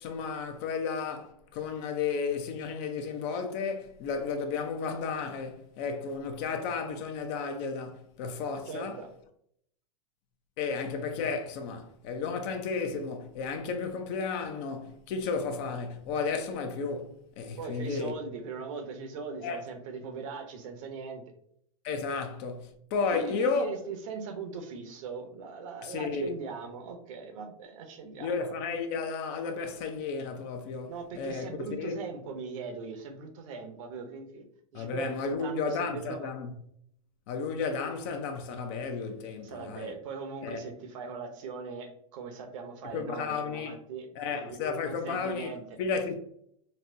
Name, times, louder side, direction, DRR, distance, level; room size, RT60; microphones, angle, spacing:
voice 1, 0.0-9.0 10.6-18.1 19.4-19.6 21.8-23.7 25.8-26.4 28.2-32.0 34.7-36.5 37.3-40.0 40.4-40.6 42.9-43.7 44.2-46.1, left 5 dB, 50° left, 0.6 m, -33 dB
voice 2, 8.7-9.1 17.6-21.3 23.1-28.3 30.9-34.4 34.7-36.3 39.4-45.6, right 4 dB, 65° right, 0.8 m, -40 dB
4.1 x 2.1 x 2.6 m
hypercardioid pair, 115°, 18 cm